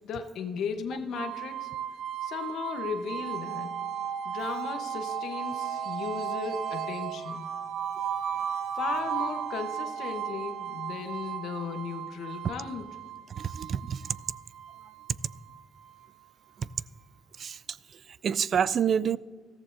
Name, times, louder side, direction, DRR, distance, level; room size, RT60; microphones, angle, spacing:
voice 1, 0.0-1.7 2.2-3.8 4.2-7.5 8.7-12.9, left 6 dB, 75° left, 0.9 m, -36 dB
sound 1, 1.1-16.1, right 9 dB, 85° right, 0.7 m, -35 dB
voice 2, 13.3-14.0 16.6-16.7 17.4-17.8 18.2-19.2, right 8 dB, 55° right, 0.3 m, -28 dB
14.0 x 14.0 x 2.6 m
cardioid pair, 90°, 0 cm